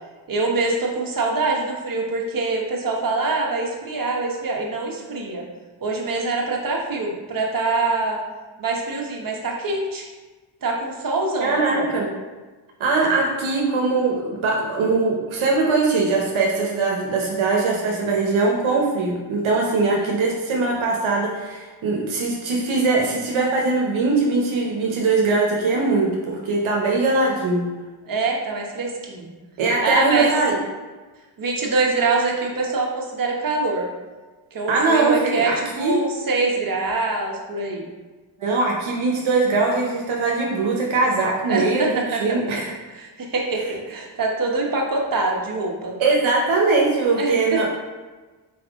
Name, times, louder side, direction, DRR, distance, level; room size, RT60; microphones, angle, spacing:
voice 1, 0.3-5.4 5.8-8.2 8.6-10.1 10.6-11.9 20.0-20.1 28.0-29.3 29.8-30.3 31.4-33.9 34.5-37.9 41.5-42.6 43.0-45.9 47.1-47.6, right 3 dB, 45° right, 0 dB, 1.1 m, -24 dB
voice 2, 11.4-12.1 12.8-27.6 29.6-30.6 34.7-36.0 38.4-42.7 46.0-47.7, right 3 dB, 80° right, -1 dB, 0.9 m, -21 dB
4.2 x 3.5 x 3.5 m, 1.3 s
cardioid pair, 65°, 47 cm